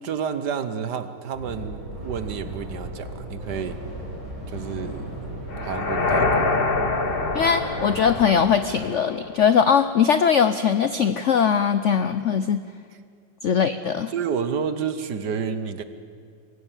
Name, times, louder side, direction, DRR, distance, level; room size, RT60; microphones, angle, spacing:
voice 1, 0.0-3.8 4.5-5.3 5.6-6.6 13.5-13.6 14.1-15.8, right 6 dB, 60° right, 11 dB, 1.6 m, -30 dB
sound 1, 1.3-8.3, right 1 dB, 15° right, 5.8 m, -36 dB
sound 2, 5.5-9.6, left 3 dB, 35° left, 1.3 m, -26 dB
voice 2, 7.3-12.6 13.4-14.1, left 7 dB, 80° left, 12 dB, 0.6 m, -20 dB
24.5 x 16.0 x 9.1 m, 2.2 s
omnidirectional pair, 2.1 m